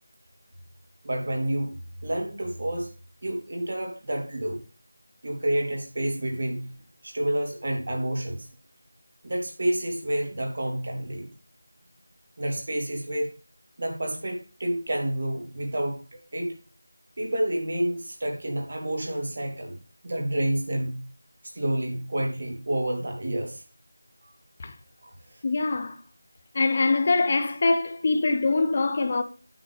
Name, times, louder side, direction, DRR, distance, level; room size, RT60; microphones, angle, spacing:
voice 1, 1.0-1.7 2.0-2.9 3.2-4.6 5.2-6.7 7.0-8.5 9.2-11.3 12.4-13.3 13.8-16.6 17.2-19.8 20.0-21.0 21.4-23.6 25.0-25.4, right 1 dB, 50° right, 3.4 m, -29 dB
voice 2, 25.4-26.0 26.5-29.2, left 3 dB, 30° left, 0.8 m, -23 dB
9.5 x 7.8 x 3.4 m
figure-of-eight pair, 170°, 0 cm